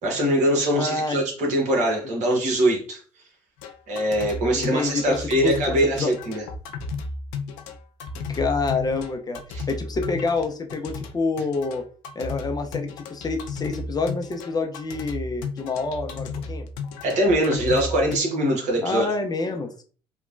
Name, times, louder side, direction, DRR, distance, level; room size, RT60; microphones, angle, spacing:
voice 1, 0.0-3.0 3.9-6.4 9.5-9.6 17.0-19.1, right 1 dB, 60° right, 1.1 m, -22 dB
voice 2, 0.7-1.2 2.0-2.1 4.5-6.1 8.3-9.4 9.7-11.8 12.2-16.7 18.8-19.7, left 3 dB, 30° left, 0.6 m, -27 dB
warped djembe mgreel, 3.6-18.2, left 4 dB, 75° left, 0.4 m, -34 dB
3.0 x 2.2 x 2.4 m
hypercardioid pair, 55°, 14 cm